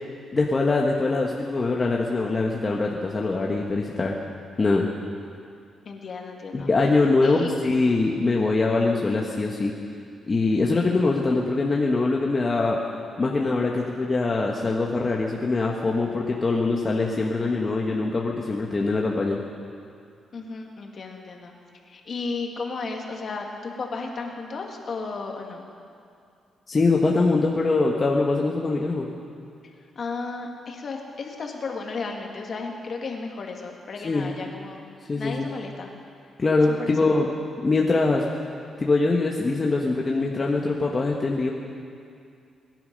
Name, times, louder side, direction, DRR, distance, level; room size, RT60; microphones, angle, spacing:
voice 1, 0.3-4.2 4.6-4.9 6.5-9.7 10.3-12.8 13.2-19.4 26.7-29.1 34.0-34.3 35.1-35.5 36.4-37.3 37.6-38.2 38.8-41.5, left 3 dB, 35° left, -1 dB, 1.4 m, -23 dB
voice 2, 5.9-6.7 7.2-7.5 20.3-21.5 21.9-25.6 29.6-34.8 35.2-35.9 36.7-37.1, left 4 dB, 55° left, 1 dB, 2.2 m, -34 dB
23.5 x 11.0 x 5.4 m, 2.4 s
cardioid pair, 85°, 0 cm